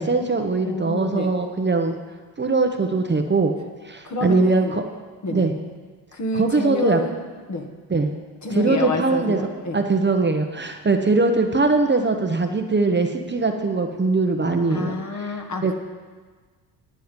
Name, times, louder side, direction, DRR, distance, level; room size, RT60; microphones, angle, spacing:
voice 1, 0.0-1.9 2.4-3.5 3.8-4.8 5.3-5.5 6.4-7.0 7.9-8.1 8.5-9.4 9.7-15.3 15.6-15.7, right 3 dB, 25° right, 4 dB, 1.0 m, -21 dB
voice 2, 0.6-1.3 4.0-4.8 5.2-5.5 6.1-7.2 7.5-7.7 8.4-9.8 14.7-15.7, left 2 dB, 40° left, 4 dB, 1.6 m, -28 dB
11.0 x 9.0 x 5.3 m, 1.4 s
supercardioid pair, 75°, 45 cm